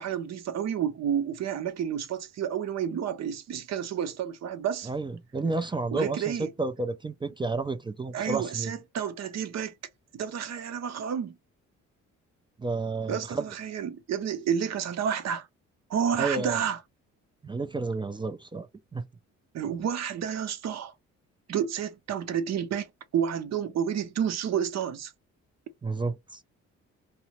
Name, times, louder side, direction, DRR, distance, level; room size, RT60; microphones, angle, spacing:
voice 1, 0.0-4.9 5.9-6.5 8.1-9.7 10.1-11.3 13.1-15.5 15.9-16.8 19.5-20.9 21.5-22.9 23.1-25.1, right 8 dB, 60° right, 0.7 m, -30 dB
voice 2, 4.8-8.7 12.6-13.5 16.2-16.6 17.4-18.7 18.9-19.0 25.8-26.4, right 3 dB, 15° right, 0.3 m, -31 dB
2.7 x 2.0 x 2.9 m
cardioid pair, 90°, 30 cm